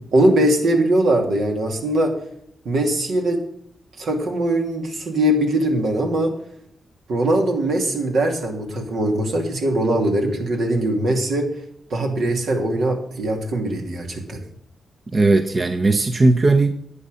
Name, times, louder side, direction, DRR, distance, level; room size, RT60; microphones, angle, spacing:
voice 1, 0.1-2.1 2.6-3.4 4.0-6.3 7.1-11.5 11.9-14.4, right 1 dB, 75° right, 3 dB, 2.6 m, -21 dB
voice 2, 15.1-16.7, right 3 dB, 40° right, 8 dB, 0.8 m, -17 dB
11.0 x 8.6 x 5.2 m, 0.69 s
cardioid pair, 75°, 0 cm